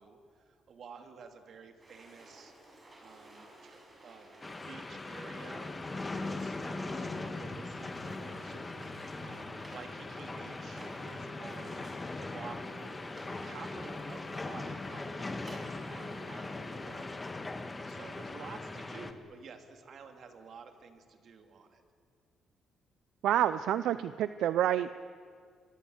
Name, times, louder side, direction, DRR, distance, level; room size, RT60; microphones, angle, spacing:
voice 1, 0.0-2.5 3.0-4.3 4.6-8.6 8.8-11.9 12.2-17.3 17.9-21.8, right 5 dB, 60° right, 6 dB, 2.8 m, -51 dB
sound 1, 1.8-17.2, right 1 dB, 25° right, 7.1 m, -53 dB
sound 2, 4.4-19.1, left 2 dB, 25° left, 1.7 m, -40 dB
voice 2, 23.2-24.9, right 11 dB, 80° right, 13 dB, 0.6 m, -28 dB
26.5 x 23.0 x 8.1 m, 2.1 s
cardioid pair, 90°, 0 cm